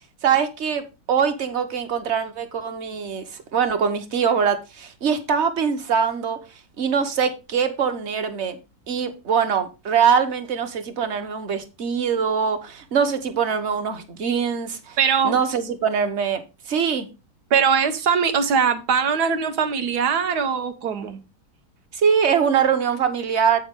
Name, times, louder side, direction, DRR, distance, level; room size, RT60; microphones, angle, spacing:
voice 1, 0.2-6.4 6.8-8.6 8.9-15.0 15.2-17.1 21.9-23.6, right 7 dB, 50° right, 1.1 m, -23 dB
voice 2, 15.0-15.4 17.5-21.2, right 6 dB, 80° right, 1.5 m, -21 dB
8.0 x 6.1 x 3.6 m
omnidirectional pair, 1.7 m